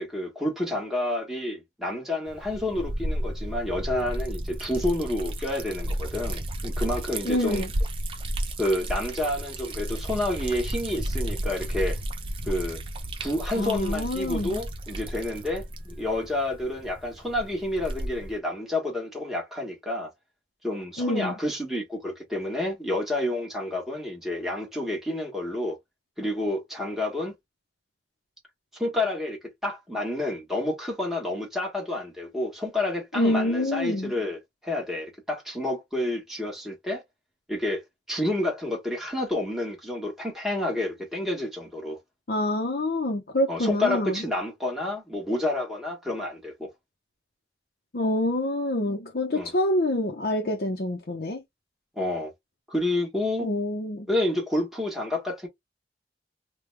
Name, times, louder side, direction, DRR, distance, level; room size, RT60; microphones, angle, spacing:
voice 1, 0.0-7.6 8.6-12.0 12.4-12.8 13.2-20.1 20.6-25.8 26.2-27.3 28.8-37.0 37.5-37.8 38.1-42.0 43.5-46.7 49.3-49.5 52.0-52.3 52.7-53.5 54.1-55.5, left 1 dB, ahead, 1.2 m, -29 dB
Liquid, 2.3-18.4, right 1 dB, 30° right, 0.6 m, -33 dB
voice 2, 7.3-7.7 13.6-14.6 21.0-21.3 33.1-34.1 42.3-44.2 47.9-51.4 53.4-54.1, left 1 dB, 60° left, 0.6 m, -26 dB
3.3 x 2.2 x 3.2 m
head